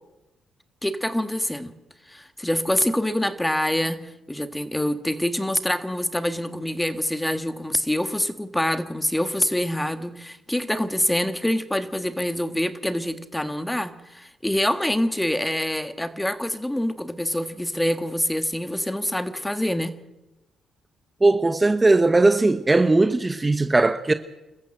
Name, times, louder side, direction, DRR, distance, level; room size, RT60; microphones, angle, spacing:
voice 1, 0.8-1.7 2.1-19.9, left 1 dB, 5° left, 1.6 m, -25 dB
voice 2, 21.2-24.1, right 2 dB, 20° right, 1.0 m, -18 dB
27.0 x 14.5 x 7.7 m
cardioid pair, 90°, 0 cm